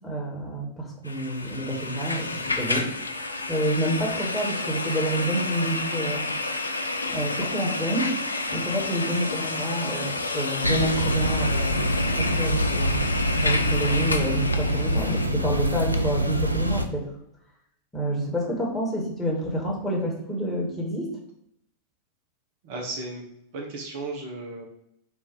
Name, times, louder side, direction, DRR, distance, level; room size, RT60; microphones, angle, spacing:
voice 1, 0.0-2.3 2.6-6.3 7.0-8.1 8.5-13.0 13.4-17.1 17.9-21.1, right 1 dB, 10° left, -3 dB, 1.4 m, -28 dB
sound 1, 1.0-15.3, left 3 dB, 80° left, 0.3 m, -30 dB
sound 2, 10.6-16.9, equal, 90° right, 0.3 m, -25 dB
voice 2, 22.6-24.6, right 2 dB, 50° right, 0 dB, 0.8 m, -35 dB
3.7 x 2.6 x 4.5 m, 0.75 s
figure-of-eight pair, 90°, 0 cm